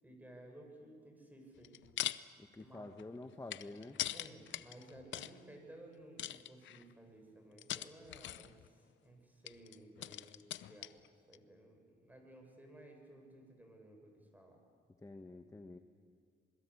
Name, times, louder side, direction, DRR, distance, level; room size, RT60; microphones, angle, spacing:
voice 1, 0.0-1.8 2.6-2.9 4.1-8.7 9.0-10.9 11.3-14.6, right 1 dB, 10° right, 3 dB, 7.0 m, -56 dB
sound 1, 1.6-2.2 2.6-5.4 6.2-6.9 7.6-8.7 9.5-11.1 11.3-11.4, left 12 dB, 70° left, 0.7 m, -42 dB
voice 2, 2.4-4.0 15.0-15.8, left 2 dB, 15° left, 7 dB, 1.3 m, -49 dB
27.0 x 21.5 x 8.4 m, 2.1 s
cardioid pair, 90°, 20 cm